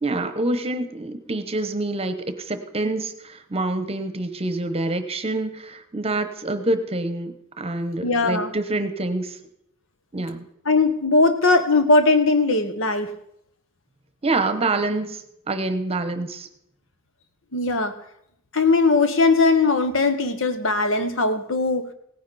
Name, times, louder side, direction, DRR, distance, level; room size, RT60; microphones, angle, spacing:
voice 1, 0.0-9.4 10.1-10.4 14.2-16.5, right 2 dB, 30° right, 10 dB, 1.0 m, -26 dB
voice 2, 8.0-8.5 10.6-13.1 17.5-17.9 18.5-21.9, left 3 dB, 70° left, 9 dB, 1.2 m, -19 dB
17.5 x 10.0 x 4.2 m, 0.76 s
head